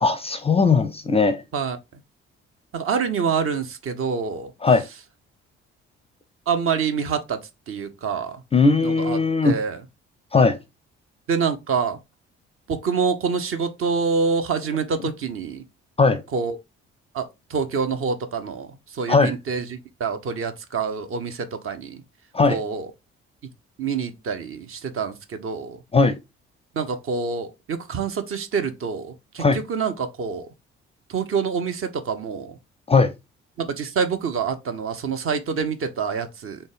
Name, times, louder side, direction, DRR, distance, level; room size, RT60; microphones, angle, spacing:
voice 1, 0.0-1.4 4.6-4.8 8.5-9.6 10.3-10.6 16.0-16.2 19.1-19.3 22.3-22.6 25.9-26.2 29.4-29.6 32.9-33.1, left 4 dB, 15° left, 0.5 m, -18 dB
voice 2, 2.7-4.5 6.5-7.4 7.7-8.4 8.8-9.2 9.4-9.8 11.3-12.0 12.7-15.6 16.3-16.6 17.1-18.7 18.9-22.0 22.5-22.9 23.8-25.8 26.8-30.5 31.1-32.5 33.6-36.6, right 5 dB, 40° right, 0.8 m, -26 dB
4.2 x 3.3 x 3.5 m
figure-of-eight pair, 45°, 34 cm